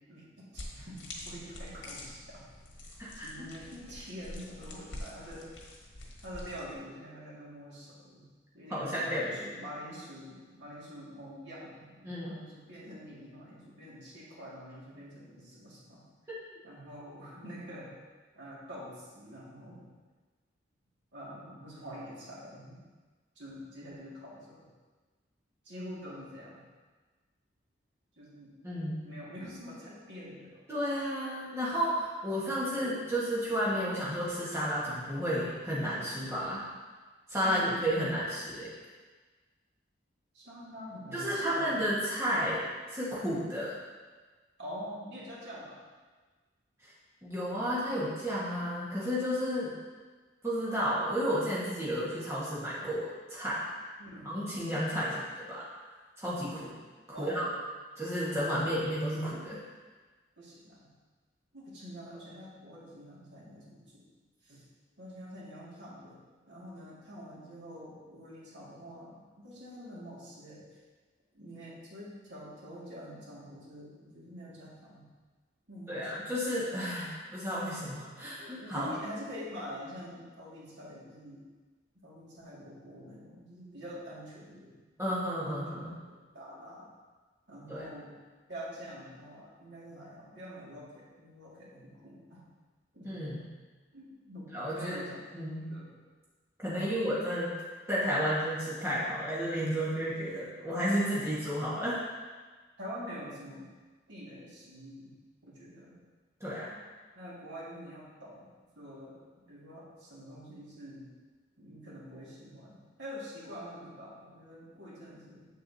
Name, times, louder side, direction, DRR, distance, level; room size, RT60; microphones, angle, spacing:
voice 1, 0.1-2.5 3.2-5.5 6.2-8.2 8.5-16.0 16.6-17.9 18.4-19.9 21.1-22.8 23.4-24.7 25.6-26.6 28.2-28.6 29.0-30.6 32.7-32.9 37.4-37.8 40.3-41.8 44.6-45.8 52.8-52.9 54.0-54.3 57.1-57.5 60.4-60.9 61.5-64.1 64.4-64.6 65.0-66.2 66.5-70.6 71.3-75.0 75.7-76.3 78.2-81.4 82.0-84.7 85.5-85.6 86.0-86.9 87.5-88.1 88.5-92.4 92.9-93.1 93.9-95.2 95.5-95.9 96.7-97.0 102.8-103.7 104.1-105.1 105.4-105.9 107.2-108.5 108.7-109.2 109.5-111.1 111.6-115.5, equal, 70° right, -7 dB, 2.0 m, -46 dB
sound 1, 0.5-6.8, left 1 dB, 75° left, 1.4 m, -46 dB
voice 2, 3.0-3.5 8.7-9.5 12.0-12.4 16.3-16.4 28.6-29.1 30.7-36.6 37.3-38.7 41.1-42.6 42.9-43.7 46.8-46.9 47.2-49.8 50.4-53.6 54.2-55.6 56.2-56.8 57.1-57.5 58.0-59.6 75.9-78.9 85.0-85.9 87.7-87.9 93.0-93.5 94.5-95.0 95.3-95.8 96.6-97.6 97.9-102.0 106.4-106.8, equal, 15° right, -8 dB, 1.5 m, -32 dB
7.9 x 7.0 x 2.7 m, 1.4 s
head